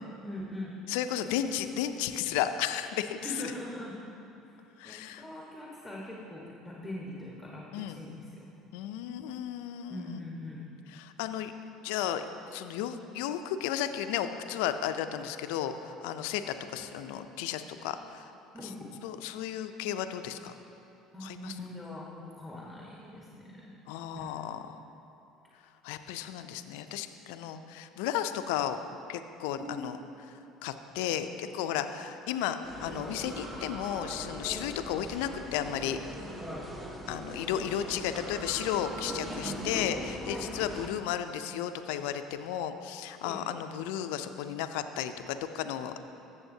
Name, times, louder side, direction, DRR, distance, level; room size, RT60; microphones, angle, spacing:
voice 1, 0.2-0.8 3.2-4.0 4.4-8.5 9.9-10.6 18.5-18.9 21.1-23.8 24.1-24.3 29.6-29.9 40.3-40.5 43.2-43.4, left 1 dB, ahead, -5 dB, 1.4 m, -42 dB
voice 2, 0.9-3.5 4.8-5.2 7.7-8.0 8.7-10.2 10.9-11.5 11.8-12.2 12.5-18.3 18.6-18.7 19.0-20.5 21.2-21.5 23.9-24.8 25.8-28.8 29.1-30.0 30.6-36.0 37.1-46.0, left 10 dB, 75° left, 9 dB, 0.4 m, -34 dB
sound 1, 32.6-40.9, right 1 dB, 15° right, 1.2 m, -40 dB
14.5 x 7.1 x 2.8 m, 2.7 s
hypercardioid pair, 70°, 0 cm